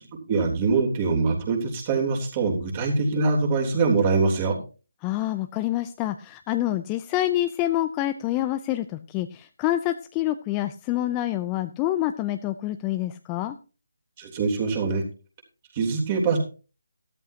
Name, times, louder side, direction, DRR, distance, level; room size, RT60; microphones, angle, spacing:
voice 1, 0.3-4.6 14.2-15.0 15.7-16.4, right 4 dB, 30° right, 0 dB, 3.4 m, -23 dB
voice 2, 5.0-13.6, left 14 dB, 15° left, 9 dB, 0.5 m, -27 dB
14.5 x 13.0 x 2.8 m, 0.34 s
figure-of-eight pair, 155°, 0 cm